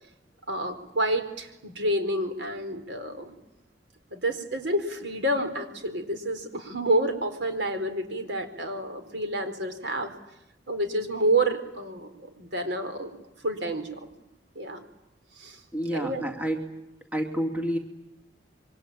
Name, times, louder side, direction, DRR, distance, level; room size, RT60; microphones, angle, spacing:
voice 1, 0.5-3.3 4.1-10.1 10.7-13.1 13.4-14.1 14.5-14.8 15.4-15.6 15.9-16.2, right 1 dB, 75° right, 7 dB, 4.3 m, -29 dB
voice 2, 15.7-16.7 17.1-17.8, equal, 10° right, 4 dB, 2.9 m, -29 dB
26.5 x 24.5 x 8.9 m, 0.87 s
head